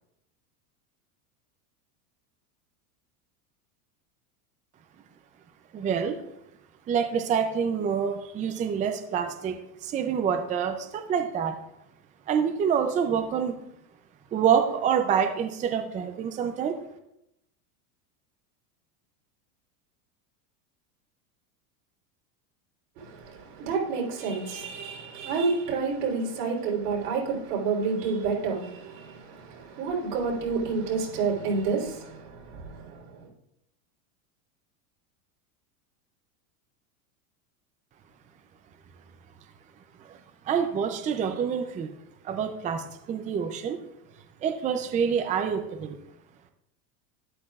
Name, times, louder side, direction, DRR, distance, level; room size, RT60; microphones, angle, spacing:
voice 1, 5.7-6.2 6.9-11.6 12.3-13.6 14.3-16.8 40.1-40.2 40.5-41.9 42.2-43.8 44.4-46.0, right 7 dB, 20° right, 0.5 m, -27 dB
voice 2, 23.0-33.3, right 4 dB, 90° right, 3.9 m, -29 dB
12.0 x 9.8 x 2.4 m
supercardioid pair, 140°, 45 cm